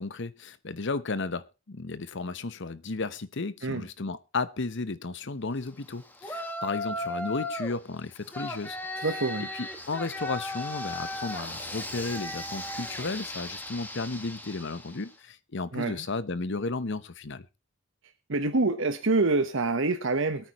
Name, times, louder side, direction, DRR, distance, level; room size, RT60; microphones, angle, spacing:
voice 1, 0.0-9.1 9.5-17.5, left 3 dB, 60° left, 0.9 m, -34 dB
Yell, 6.2-7.8 8.3-15.0, left 1 dB, 10° left, 1.7 m, -36 dB
voice 2, 9.0-9.5 15.7-16.0 18.3-20.5, right 3 dB, 65° right, 1.1 m, -26 dB
22.5 x 9.2 x 3.0 m
head